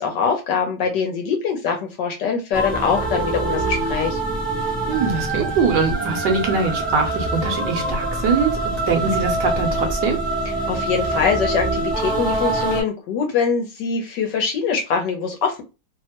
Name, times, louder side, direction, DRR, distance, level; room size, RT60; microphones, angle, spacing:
voice 1, 0.0-4.2 10.7-15.6, left 6 dB, 70° left, 3 dB, 1.2 m, -23 dB
sound 1, 2.5-12.8, right 2 dB, ahead, 0.3 m, -24 dB
voice 2, 4.9-8.6 8.9-10.2, right 5 dB, 70° right, 4 dB, 1.2 m, -22 dB
3.3 x 2.1 x 2.8 m, 0.28 s
omnidirectional pair, 2.2 m